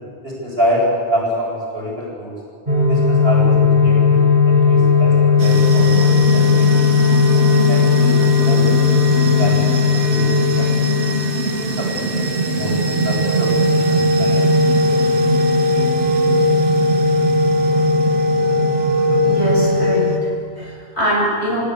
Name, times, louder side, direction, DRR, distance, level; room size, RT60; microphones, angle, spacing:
voice 1, 0.2-0.8 1.1-2.3 2.9-6.9 7.3-8.1 8.4-8.6 9.2-10.3 10.6-10.9 11.4-14.4, equal, 60° right, -3 dB, 8.4 m, -26 dB
sound 1, 2.7-20.0, left 4 dB, 40° right, 4.7 m, -16 dB
sound 2, 5.4-20.2, right 3 dB, 90° right, 1.7 m, -24 dB
voice 2, 19.2-21.7, right 1 dB, 80° left, -5 dB, 8.3 m, -22 dB
29.5 x 16.5 x 8.4 m, 2.4 s
omnidirectional pair, 1.1 m